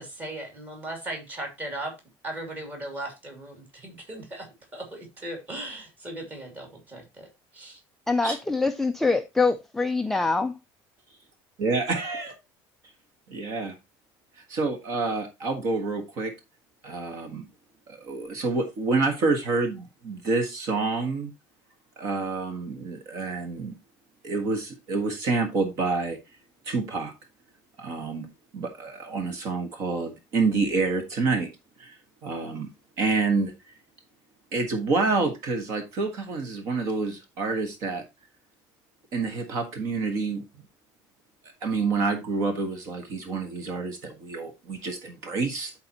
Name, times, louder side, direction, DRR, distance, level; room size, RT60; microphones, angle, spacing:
voice 1, 0.0-1.9 2.2-7.8, right 1 dB, 20° right, 2.6 m, -38 dB
voice 2, 8.1-10.6, left 3 dB, 5° left, 0.4 m, -24 dB
voice 3, 11.6-12.4 13.3-13.7 14.4-16.3 16.8-17.4 17.9-21.3 22.0-23.7 24.2-26.2 26.6-27.1 27.8-28.3 28.5-31.5 31.8-32.7 33.0-33.5 34.5-38.0 39.1-40.4 41.6-45.7, right 3 dB, 40° right, 1.4 m, -28 dB
12.5 x 4.3 x 2.9 m
cardioid pair, 180°, 8 cm